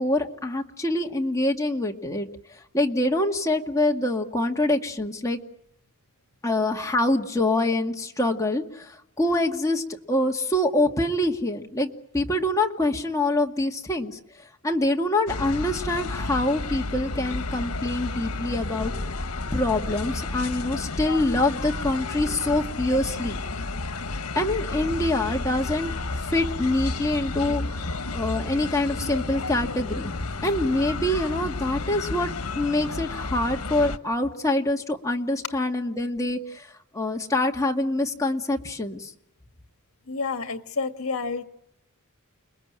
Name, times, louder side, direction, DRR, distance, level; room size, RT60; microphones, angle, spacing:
voice 1, 0.0-2.3 2.7-5.4 6.4-8.9 9.2-14.2 14.6-18.9 19.5-23.4 24.4-32.3 32.6-36.7 36.9-39.1, left 1 dB, 15° left, 1 dB, 2.0 m, -25 dB
sound 1, 15.3-34.0, left 3 dB, 85° left, 1.3 m, -31 dB
voice 2, 40.1-41.4, left 4 dB, 65° left, 7 dB, 2.0 m, -29 dB
29.5 x 21.0 x 9.0 m, 0.76 s
head